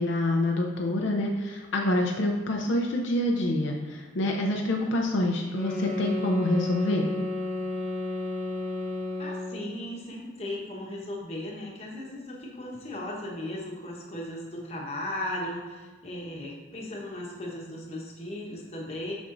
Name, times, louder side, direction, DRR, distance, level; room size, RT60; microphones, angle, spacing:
voice 1, 0.0-7.1, left 1 dB, 70° left, 0 dB, 0.6 m, -26 dB
sound 1, 5.5-9.7, left 1 dB, 60° right, 1.8 m, -32 dB
voice 2, 9.2-19.1, left 1 dB, 30° left, -3 dB, 1.1 m, -36 dB
6.7 x 6.2 x 2.6 m, 1.4 s
head